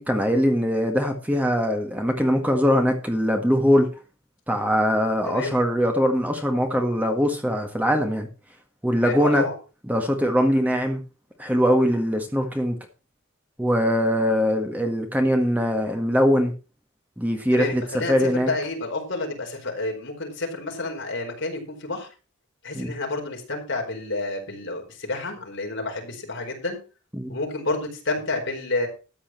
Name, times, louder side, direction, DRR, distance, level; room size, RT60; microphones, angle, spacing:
voice 1, 0.0-3.9 4.5-8.3 8.8-9.5 9.9-11.0 11.4-12.8 13.6-16.5 17.2-18.5 22.7-22.9 27.2-27.3, equal, 5° right, 4 dB, 1.7 m, -22 dB
voice 2, 9.0-9.6 17.5-22.1 22.6-26.8 27.3-28.9, left 2 dB, 55° left, 1 dB, 4.6 m, -29 dB
13.5 x 8.6 x 4.4 m, 0.33 s
head